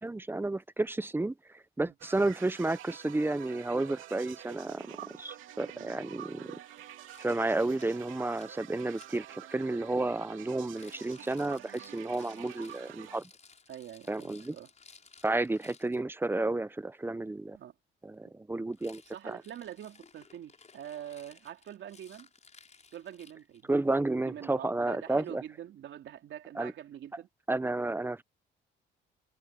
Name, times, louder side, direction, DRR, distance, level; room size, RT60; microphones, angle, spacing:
voice 1, 0.0-6.5 7.2-13.3 14.1-14.6 15.2-17.6 18.0-19.4 23.7-25.4 26.5-26.7 27.5-28.2, right 2 dB, 10° right, 0.8 m, -32 dB
sound 1, 2.0-13.2, right 12 dB, 85° right, 2.8 m, -48 dB
voice 2, 5.7-6.1 13.7-14.7 17.5-17.7 19.1-22.3 22.9-23.7 24.2-27.3, right 10 dB, 70° right, 3.0 m, -45 dB
Rattle, 6.6-9.2 10.6-16.0 18.7-23.7, left 5 dB, 35° left, 5.8 m, -59 dB
cardioid pair, 90°, 20 cm